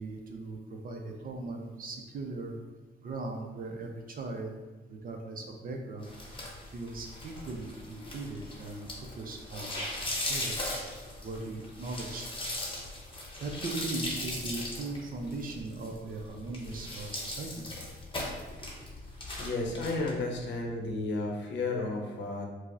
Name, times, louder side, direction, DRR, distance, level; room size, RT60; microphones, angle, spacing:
voice 1, 0.0-2.5 3.0-4.5 4.9-6.1 6.7-8.9 9.2-9.8 10.2-10.5 11.2-12.3 13.4-17.6, right 3 dB, 45° right, 2 dB, 0.5 m, -39 dB
sound 1, 6.0-20.1, left 1 dB, 25° left, 0.8 m, -39 dB
voice 2, 19.4-22.5, left 2 dB, 65° left, 1 dB, 0.7 m, -32 dB
4.4 x 2.0 x 2.6 m, 1.2 s
cardioid pair, 90°, 20 cm